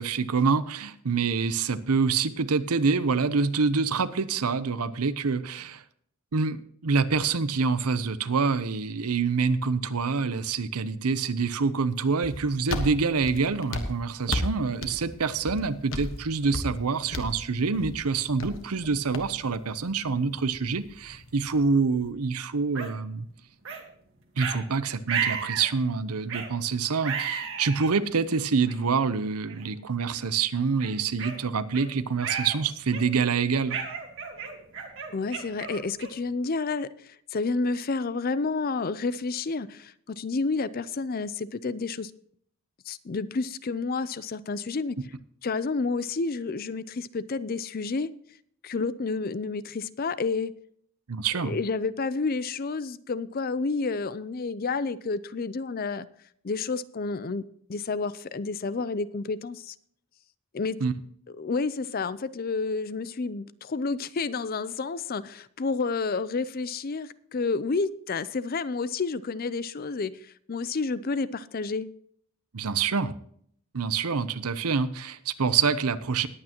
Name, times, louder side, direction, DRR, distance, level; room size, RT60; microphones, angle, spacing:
voice 1, 0.0-5.8 6.3-23.3 24.4-33.8 51.1-51.6 60.8-60.9 72.5-73.1 73.7-76.3, right 5 dB, 85° right, 14 dB, 0.7 m, -26 dB
sound 1, 12.2-22.1, left 1 dB, 60° left, 1.4 m, -36 dB
sound 2, 22.8-22.9 23.7-23.8 24.4-24.6 25.1-25.7 26.3-26.5 27.0-27.9 28.7-28.8 29.5-29.7 30.1-30.3 30.8-31.9 32.2-32.6 32.9-33.3 33.7-36.3, right 6 dB, 60° right, 1.8 m, -33 dB
voice 2, 35.1-42.1 42.9-45.0 45.4-48.1 48.6-50.5 51.4-56.1 56.4-59.7 60.5-60.8 61.4-71.9, left 4 dB, 40° left, 16 dB, 0.5 m, -30 dB
19.5 x 8.7 x 3.0 m, 0.64 s
head